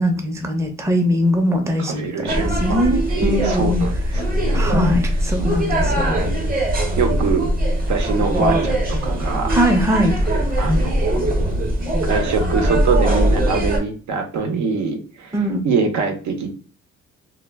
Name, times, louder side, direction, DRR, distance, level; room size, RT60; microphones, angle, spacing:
voice 1, 0.0-2.1 2.4-3.8 4.5-6.3 9.5-10.1 15.3-15.6, equal, 10° right, 3 dB, 0.5 m, -21 dB
voice 2, 1.8-4.6 6.4-6.5 7.0-7.5 7.9-9.5 10.6-11.2 12.1-16.5, right 4 dB, 70° right, 4 dB, 0.7 m, -24 dB
sound 1, 2.3-13.8, right 1 dB, 30° right, 0.8 m, -20 dB
2.1 x 2.0 x 3.3 m, 0.39 s
cardioid pair, 90°, 30 cm